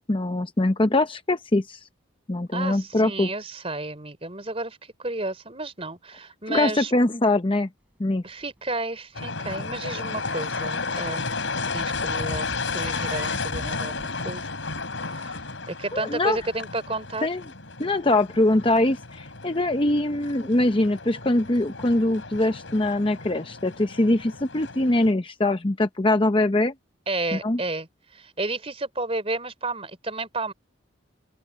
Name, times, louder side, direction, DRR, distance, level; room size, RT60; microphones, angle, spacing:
voice 1, 0.0-1.8 2.3-3.3 6.5-7.7 8.0-8.2 15.9-16.4 17.2-17.4 17.8-26.7 27.3-27.6, left 2 dB, 25° left, 0.7 m, -23 dB
voice 2, 2.5-6.9 8.2-11.3 11.7-14.4 15.1-17.3 27.1-30.5, right 2 dB, 30° right, 4.1 m, -32 dB
sound 1, 8.0-8.1 8.4-8.6 9.7-11.1 11.6-11.7 12.2-12.6 12.8-14.4, right 1 dB, 5° right, 4.9 m, -46 dB
sound 2, 9.1-25.1, left 4 dB, 70° left, 4.6 m, -33 dB
open air
head